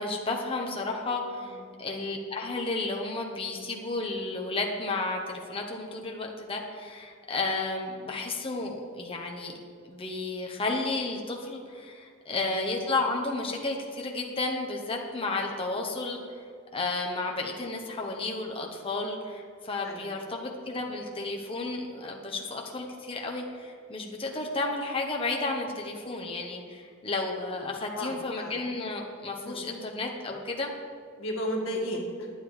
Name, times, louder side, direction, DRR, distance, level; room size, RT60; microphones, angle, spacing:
voice 1, 0.0-9.5 9.8-16.2 16.7-30.7, left 3 dB, 25° left, 1 dB, 0.9 m, -32 dB
voice 2, 1.4-1.7 12.3-12.5 19.8-20.1 27.9-28.5 29.4-29.7 31.2-32.3, equal, 70° left, 0 dB, 1.8 m, -34 dB
10.5 x 9.1 x 4.8 m, 2.2 s
head